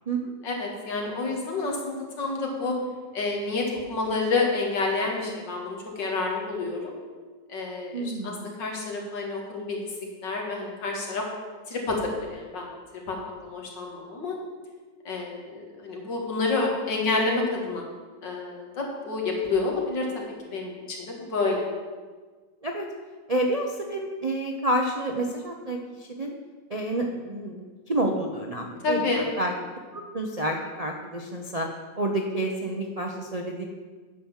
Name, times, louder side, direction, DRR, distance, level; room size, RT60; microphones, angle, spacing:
voice 1, 0.4-2.7 3.1-6.9 7.5-8.3 8.6-11.2 11.7-12.7 13.1-13.2 13.4-14.4 15.0-17.8 18.2-21.7 28.8-29.2, left 3 dB, 90° left, 0 dB, 2.6 m, -29 dB
voice 2, 7.9-8.5 22.6-22.9 23.3-26.3 26.7-29.5 29.9-31.7 32.0-33.6, right 1 dB, 45° right, 1 dB, 0.4 m, -29 dB
9.3 x 5.9 x 7.2 m, 1.4 s
omnidirectional pair, 1.9 m